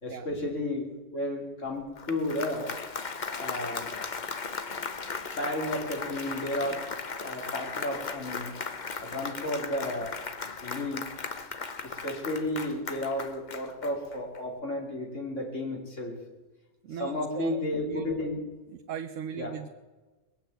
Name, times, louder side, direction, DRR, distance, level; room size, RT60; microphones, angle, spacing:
voice 1, 0.0-2.8 3.3-3.9 5.4-6.8 7.2-8.5 9.0-10.2 10.6-11.0 11.8-16.2 17.0-18.4 19.4-19.5, left 1 dB, 75° left, 0 dB, 3.4 m, -33 dB
Applause, 1.8-14.4, left 5 dB, 40° left, 1.0 m, -37 dB
voice 2, 16.8-18.1 18.9-19.7, right 8 dB, 85° right, 8 dB, 1.1 m, -38 dB
21.0 x 8.4 x 7.9 m, 1.2 s
omnidirectional pair, 1.3 m